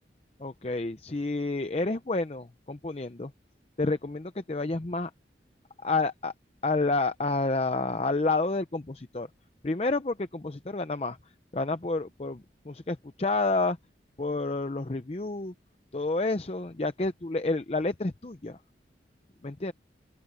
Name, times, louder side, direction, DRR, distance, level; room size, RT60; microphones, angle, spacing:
voice 1, 0.4-3.3 3.8-5.1 5.8-6.3 6.6-9.3 9.6-11.2 11.5-13.8 14.2-15.5 15.9-18.6 19.4-19.7, left 3 dB, 35° left, 0.6 m, -29 dB
open air
head